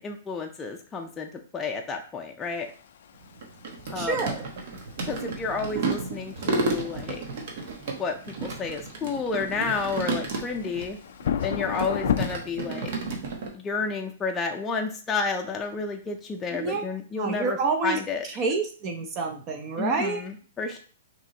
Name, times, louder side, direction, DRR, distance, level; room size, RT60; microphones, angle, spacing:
voice 1, 0.0-2.7 3.9-4.2 5.1-7.2 8.0-11.0 11.4-12.9 13.5-18.3 19.8-20.8, left 4 dB, 15° left, 1 dB, 0.5 m, -31 dB
sound 1, 2.5-12.3, left 9 dB, 65° left, 0.4 m, -34 dB
sound 2, 3.1-10.9 11.2-13.5, right 4 dB, 55° right, 1.1 m, -33 dB
voice 2, 4.0-4.4 16.5-16.8 17.2-18.0 18.4-20.2, right 4 dB, 30° right, 4 dB, 0.7 m, -28 dB
5.9 x 3.0 x 2.9 m, 0.41 s
hypercardioid pair, 150°, 0 cm